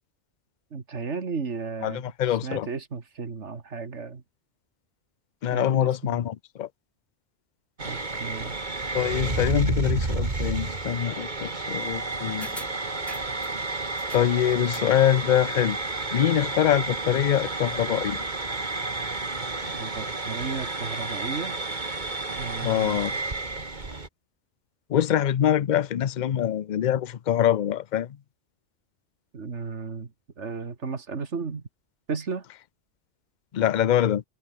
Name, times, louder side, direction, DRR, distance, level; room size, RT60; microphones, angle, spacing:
voice 1, 0.7-2.0 2.4-4.2 5.5-6.2 7.8-8.6 19.7-21.6 22.4-23.0 29.3-30.1 30.4-31.6 32.1-32.4, right 5 dB, 70° right, 2.2 m, -34 dB
voice 2, 1.8-2.7 5.4-6.7 8.9-12.5 14.1-15.8 16.1-18.2 22.6-23.1 24.9-28.2 33.5-34.2, left 10 dB, 50° left, 0.6 m, -24 dB
sound 1, 7.8-24.1, right 3 dB, 35° right, 2.4 m, -31 dB
sound 2, 12.4-13.6 14.0-15.0 15.3-15.4, equal, ahead, 6.3 m, -44 dB
omnidirectional pair, 1.3 m